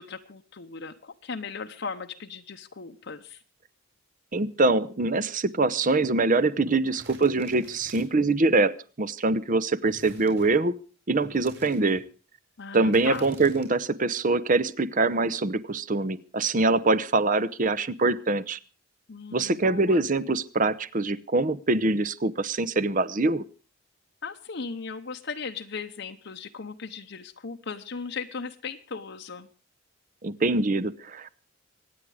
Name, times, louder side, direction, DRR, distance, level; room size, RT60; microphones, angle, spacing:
voice 1, 0.0-3.4 12.6-13.2 19.1-20.1 24.2-29.5, left 5 dB, 55° left, 5 dB, 0.8 m, -37 dB
voice 2, 4.3-8.7 9.0-10.7 11.1-12.0 12.7-18.6 19.3-23.4 30.2-31.3, right 3 dB, 40° right, 17 dB, 0.8 m, -24 dB
sound 1, 6.9-8.3 9.9-10.6 11.2-12.0 12.9-13.7, right 2 dB, 55° right, 4.4 m, -47 dB
25.0 x 9.6 x 4.8 m, 0.36 s
head